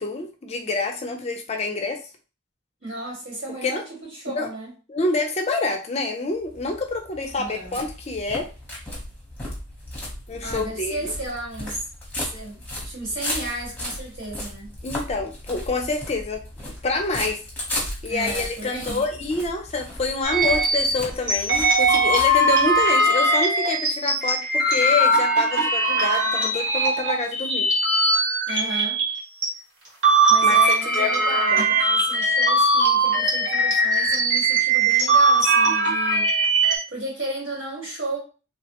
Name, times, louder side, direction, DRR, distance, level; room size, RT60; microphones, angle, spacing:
voice 1, 0.0-2.0 3.6-3.8 4.3-4.5 4.9-8.5 10.3-11.1 14.8-16.4 16.8-17.4 18.0-27.7 30.4-30.6 30.9-31.1 31.5-31.7, left 3 dB, 35° left, 0.4 m, -27 dB
voice 2, 2.8-4.7 7.4-7.7 10.4-11.8 12.2-14.7 18.1-19.0 28.5-29.0 30.3-36.3 36.9-38.2, right 1 dB, 80° right, 1.6 m, -34 dB
sound 1, 6.4-22.9, left 1 dB, 10° left, 0.8 m, -35 dB
sound 2, 20.2-29.5 29.9-36.8, right 2 dB, 60° right, 1.1 m, -20 dB
3.1 x 2.1 x 2.8 m
head